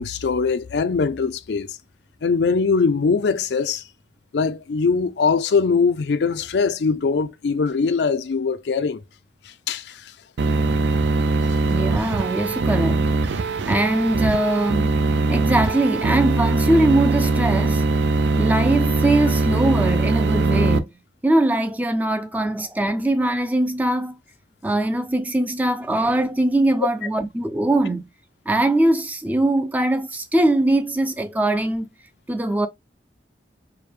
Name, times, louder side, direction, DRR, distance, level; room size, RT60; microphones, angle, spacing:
voice 1, 0.0-1.8 2.2-3.8 4.3-9.0 9.7-10.0, left 5 dB, 75° left, 0.4 m, -21 dB
sound 1, 10.4-20.8, right 3 dB, 85° right, 0.5 m, -21 dB
voice 2, 11.7-15.0 15.3-17.8 18.4-20.9 21.2-24.2 24.6-28.1 28.5-31.9 32.3-32.7, right 1 dB, 10° right, 0.4 m, -21 dB
4.7 x 2.2 x 3.2 m
head